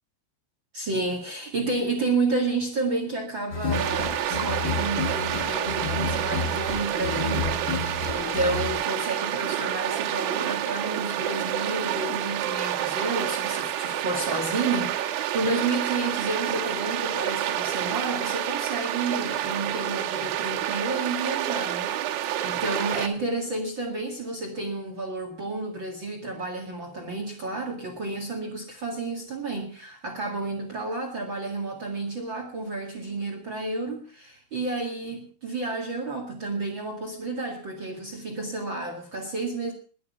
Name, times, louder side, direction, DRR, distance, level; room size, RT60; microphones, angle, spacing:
voice 1, 0.7-39.7, right 3 dB, 55° right, 1.3 m, -31 dB
sound 1, 3.5-8.7, left 4 dB, 80° left, 1.0 m, -31 dB
sound 2, 3.7-23.1, right 12 dB, 75° right, 3.5 m, -29 dB
21.0 x 9.6 x 5.4 m
omnidirectional pair, 5.7 m